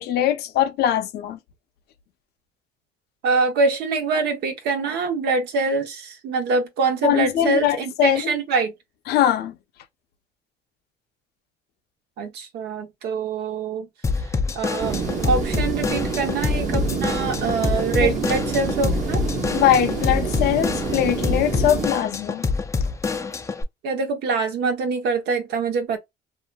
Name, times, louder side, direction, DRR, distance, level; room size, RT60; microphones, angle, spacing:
voice 1, 0.0-1.4 7.0-8.2 9.1-9.5 18.0-18.1 19.5-22.5, left 11 dB, 70° left, 0.7 m, -21 dB
voice 2, 3.2-8.7 12.2-13.9 14.5-19.2 23.8-26.0, right 4 dB, 80° right, 0.9 m, -24 dB
Drum kit / Drum, 14.0-23.6, left 4 dB, 15° left, 0.4 m, -26 dB
sound 1, 14.8-21.9, right 4 dB, 45° right, 1.1 m, -27 dB
2.7 x 2.5 x 2.2 m
cardioid pair, 110°, 17 cm